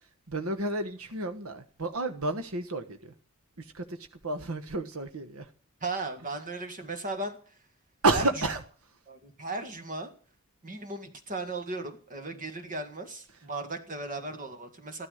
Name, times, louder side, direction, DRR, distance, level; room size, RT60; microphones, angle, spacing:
voice 1, 0.3-3.1 3.6-4.0 4.2-5.5 8.0-8.6, right 2 dB, 75° right, 1.3 m, -30 dB
voice 2, 5.8-7.6 8.1-8.3 9.1-10.1 10.6-15.1, right 2 dB, 35° right, 1.8 m, -36 dB
14.5 x 13.5 x 6.5 m
head